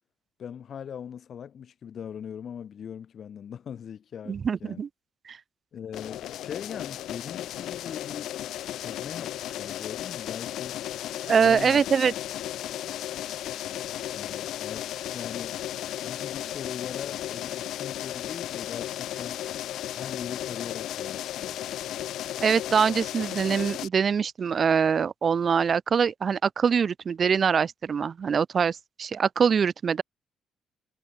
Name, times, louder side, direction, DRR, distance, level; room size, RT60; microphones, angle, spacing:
voice 1, 0.4-4.8 5.7-8.4 8.7-10.8 11.4-11.8 14.1-15.6 16.0-19.4 19.9-21.6, left 8 dB, 55° left, 0.7 m, -40 dB
voice 2, 4.3-4.9 5.3-5.4 11.3-12.1 22.4-30.0, right 6 dB, 45° right, 0.3 m, -24 dB
sound 1, 5.9-23.9, left 12 dB, 80° left, 1.0 m, -35 dB
cardioid pair, 90°, 0 cm